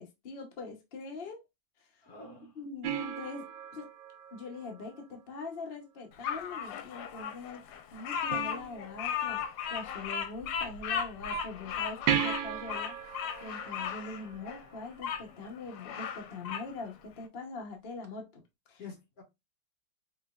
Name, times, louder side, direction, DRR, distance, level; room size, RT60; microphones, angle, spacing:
voice 1, 0.0-1.4 1.8-2.0 2.6-3.9 4.3-9.4 9.7-13.0 13.4-18.4 18.7-18.8, left 3 dB, 60° left, 0.5 m, -43 dB
voice 2, 2.0-2.6 18.8-19.2, left 4 dB, 45° left, 1.7 m, -47 dB
sound 1, 2.8-5.5 8.3-9.3 12.1-15.0 18.0-18.1, right 9 dB, 70° right, 1.2 m, -36 dB
Bird vocalization bird call bird song, 6.2-15.2 15.7-16.7, left 7 dB, 85° left, 1.5 m, -36 dB
4.9 x 3.2 x 2.3 m
omnidirectional pair, 2.4 m